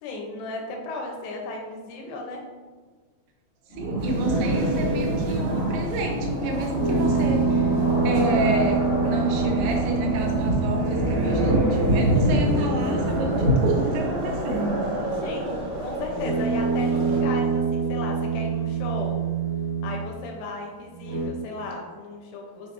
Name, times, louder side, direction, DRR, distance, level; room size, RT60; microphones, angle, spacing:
voice 1, 0.0-2.4 15.2-15.5 15.8-19.2 19.8-22.7, left 2 dB, 80° left, 1 dB, 2.7 m, -35 dB
sound 1, 3.7-14.7, right 1 dB, 50° left, 1.6 m, -26 dB
voice 2, 3.8-7.7 8.0-14.8, right 2 dB, 85° right, 2 dB, 3.3 m, -29 dB
sound 2, 4.0-17.2, right 1 dB, 70° right, 3.3 m, -30 dB
sound 3, 6.8-14.1 16.1-20.3 20.9-21.3, right 5 dB, 45° right, 1.5 m, -26 dB
7.1 x 6.2 x 2.6 m, 1.4 s
omnidirectional pair, 5.1 m